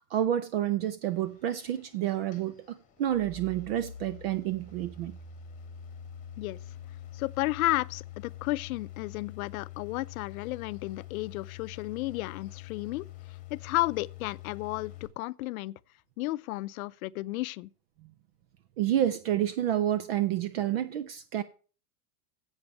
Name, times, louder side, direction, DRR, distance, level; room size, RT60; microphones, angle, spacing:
voice 1, 0.1-5.1 18.8-21.4, right 11 dB, 45° right, 0.5 m, -29 dB
sound 1, 1.0-15.1, left 9 dB, 15° left, 1.7 m, -46 dB
voice 2, 7.1-13.1 13.5-15.7 16.2-17.7, left 19 dB, 70° left, 0.6 m, -32 dB
8.1 x 6.7 x 6.9 m
supercardioid pair, 175°, 45 cm